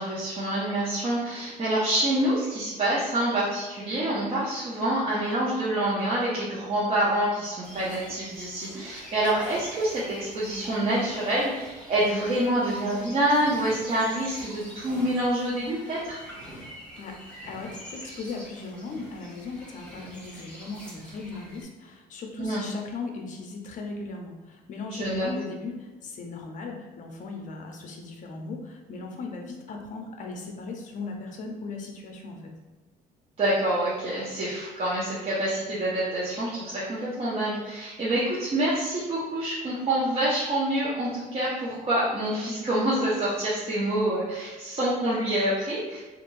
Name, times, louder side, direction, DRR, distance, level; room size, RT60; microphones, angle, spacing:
voice 1, 0.0-16.2 22.4-22.7 24.9-25.3 33.4-46.0, right 1 dB, 35° right, -8 dB, 0.7 m, -27 dB
sound 1, 7.6-21.6, equal, 5° left, 0.9 m, -45 dB
voice 2, 17.0-32.5, left 3 dB, 50° left, 2 dB, 0.6 m, -37 dB
2.9 x 2.5 x 2.6 m, 1.2 s
cardioid pair, 110°, 17 cm